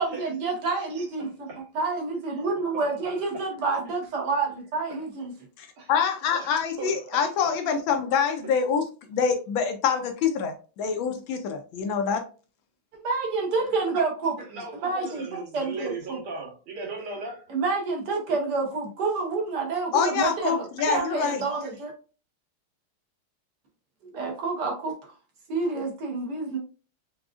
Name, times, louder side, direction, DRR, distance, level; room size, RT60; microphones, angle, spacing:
voice 1, 0.0-1.5 1.7-5.3 12.9-14.5 14.8-16.2 17.5-21.9 24.1-24.9 25.5-26.6, right 4 dB, 60° right, 0 dB, 1.3 m, -28 dB
voice 2, 1.2-1.6 2.3-2.4 2.7-3.5 4.9-5.0 5.8-5.9 6.3-7.5 14.5-17.5, right 3 dB, 80° right, -2 dB, 2.0 m, -38 dB
voice 3, 5.6-12.2 19.9-21.4, left 6 dB, 75° left, 6 dB, 1.3 m, -26 dB
4.8 x 2.3 x 2.4 m, 0.35 s
omnidirectional pair, 2.3 m